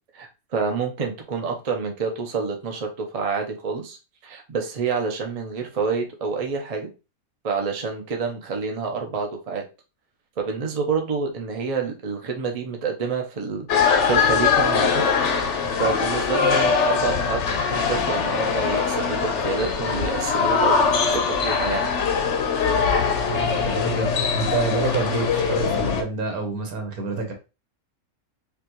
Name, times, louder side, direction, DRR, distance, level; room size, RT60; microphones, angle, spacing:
voice 1, 0.1-4.0 4.2-6.9 7.4-9.6 10.4-15.0 15.8-17.4 17.7-21.9, right 5 dB, 40° right, 2 dB, 0.5 m, -28 dB
sound 1, 13.7-26.0, left 5 dB, 60° left, 0.9 m, -22 dB
voice 2, 23.3-27.3, right 3 dB, 75° right, 3 dB, 1.5 m, -28 dB
5.1 x 2.3 x 2.9 m, 0.29 s
omnidirectional pair, 1.5 m